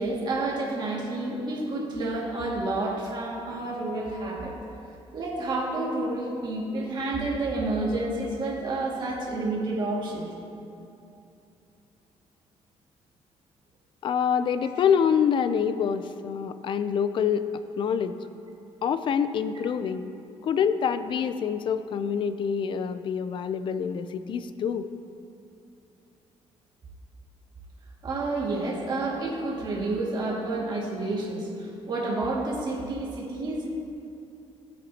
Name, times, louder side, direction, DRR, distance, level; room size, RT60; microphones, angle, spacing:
voice 1, 0.0-4.6 5.1-10.3 28.0-33.7, right 2 dB, 40° right, -4 dB, 2.0 m, -29 dB
voice 2, 14.0-17.5 17.8-18.1 18.8-20.1 20.4-24.9, left 7 dB, 45° left, 11 dB, 0.4 m, -26 dB
15.5 x 8.5 x 2.8 m, 2.8 s
cardioid pair, 150°, 12 cm